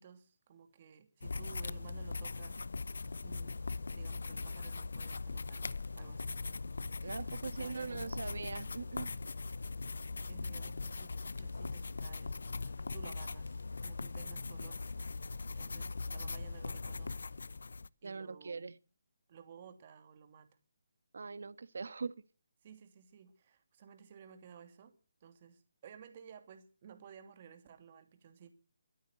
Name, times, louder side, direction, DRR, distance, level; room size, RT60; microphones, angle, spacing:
voice 1, 0.0-2.6 3.2-3.6 3.9-5.7 5.9-6.4 7.2-8.2 10.2-14.8 15.5-17.2 18.0-18.7 19.3-20.5 22.6-28.5, right 7 dB, 35° right, 2.7 m, -55 dB
sound 1, 1.2-17.9, left 3 dB, 75° left, 0.8 m, -40 dB
voice 2, 7.0-9.1 18.0-18.7 21.1-22.1, right 4 dB, 70° right, 1.4 m, -41 dB
23.0 x 9.1 x 6.7 m
hypercardioid pair, 165°, 0 cm